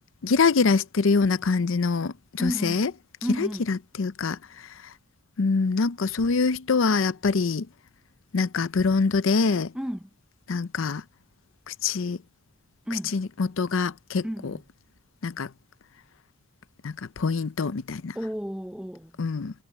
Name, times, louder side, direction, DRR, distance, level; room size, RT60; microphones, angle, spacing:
voice 1, 0.2-2.9 3.4-4.4 5.4-7.7 8.3-9.7 10.5-11.0 11.7-12.2 13.1-14.5 15.2-15.5 16.8-18.2 19.2-19.5, left 4 dB, 75° left, 0.6 m, -24 dB
voice 2, 2.4-2.9 3.2-3.7 9.7-10.1 12.9-13.2 14.2-14.6 18.1-19.1, equal, 5° right, 0.6 m, -32 dB
head